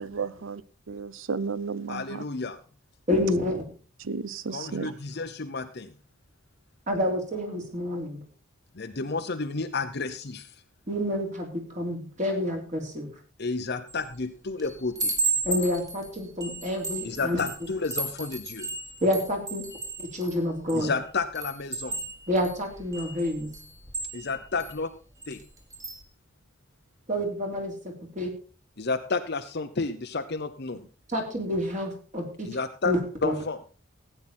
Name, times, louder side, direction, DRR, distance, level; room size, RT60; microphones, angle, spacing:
voice 1, 0.0-0.6 0.9-2.2 4.0-4.9, right 5 dB, 65° right, 17 dB, 0.7 m, -33 dB
voice 2, 1.9-2.6 4.5-5.9 8.7-10.5 13.4-15.2 17.0-18.7 20.7-22.0 24.1-24.9 25.3-25.4 28.8-30.8 32.4-32.9 33.2-33.6, left 4 dB, 50° left, 6 dB, 0.7 m, -31 dB
voice 3, 3.1-3.6 6.9-8.2 10.9-13.1 15.4-17.4 19.0-19.7 20.0-20.9 22.3-23.5 27.1-28.3 31.1-32.5 32.8-33.4, left 1 dB, 35° right, 2 dB, 3.2 m, -28 dB
Chime, 13.9-14.2 14.6-20.9 21.4-24.7 25.2-25.4 25.7-26.0, right 3 dB, 15° right, 2.0 m, -34 dB
15.5 x 9.0 x 4.3 m, 0.37 s
head